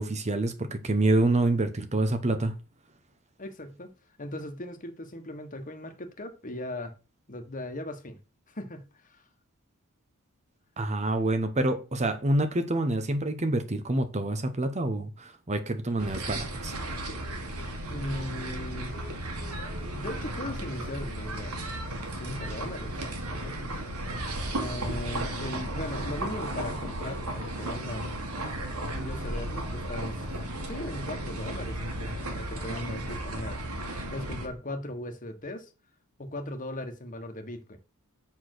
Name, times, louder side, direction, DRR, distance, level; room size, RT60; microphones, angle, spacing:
voice 1, 0.0-2.5 10.8-16.8, right 2 dB, 30° right, 0.8 m, -27 dB
voice 2, 3.4-3.9 4.2-6.9 7.3-8.2 8.5-9.2 17.9-18.9 19.9-21.6 22.1-23.8 24.6-28.2 28.9-30.3 30.7-35.7 36.2-37.8, left 1 dB, 35° left, 1.4 m, -38 dB
sound 1, 16.0-34.5, right 1 dB, 80° right, 2.0 m, -34 dB
7.7 x 4.4 x 6.4 m
head